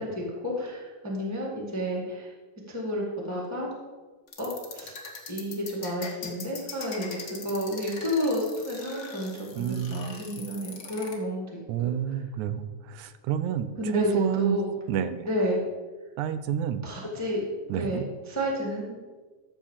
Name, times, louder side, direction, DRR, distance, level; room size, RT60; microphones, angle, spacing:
voice 1, 0.0-2.3 2.7-3.7 4.4-4.9 5.3-11.5 11.8-11.9 13.8-14.6 15.2-15.6 16.8-17.4 17.7-18.9, equal, 5° left, -3 dB, 1.4 m, -31 dB
sound 1, 4.3-11.1, left 5 dB, 45° left, 1.3 m, -41 dB
voice 2, 9.5-10.2 11.7-14.6 14.9-15.3 16.2-16.8 17.7-18.0, right 9 dB, 80° right, 11 dB, 2.0 m, -29 dB
13.5 x 4.5 x 7.3 m, 1.3 s
omnidirectional pair, 3.4 m